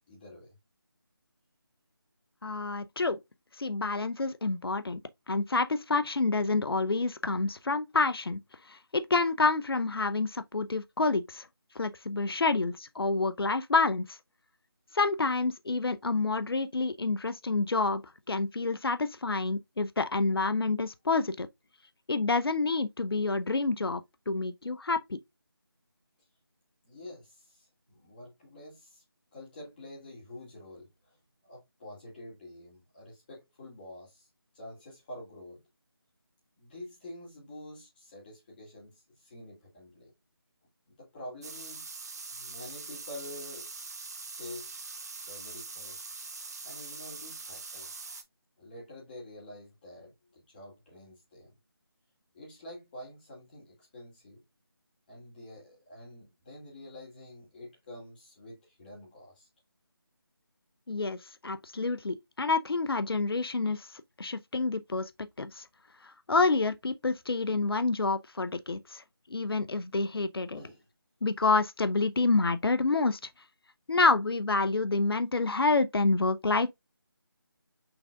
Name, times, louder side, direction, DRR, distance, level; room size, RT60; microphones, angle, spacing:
voice 1, 0.1-0.5 12.1-12.5 26.8-29.0 29.3-31.2 31.4-34.3 34.5-35.6 36.6-40.1 40.9-42.0 42.3-43.7 44.3-46.0 46.3-48.1 48.6-51.5 52.3-54.4 55.1-59.5 70.5-70.9, left 1 dB, 25° left, 2.3 m, -48 dB
voice 2, 2.4-3.2 3.6-5.0 5.3-8.4 8.7-11.5 11.7-14.2 14.9-18.0 18.3-21.5 22.1-24.0 24.3-25.2 60.9-63.9 64.2-65.1 65.4-65.6 66.0-69.0 69.3-70.6 71.2-73.2 73.9-76.7, left 3 dB, 75° left, 0.7 m, -28 dB
sound 1, 41.4-48.2, right 4 dB, 45° right, 0.8 m, -43 dB
6.0 x 3.7 x 2.2 m
figure-of-eight pair, 165°, 13 cm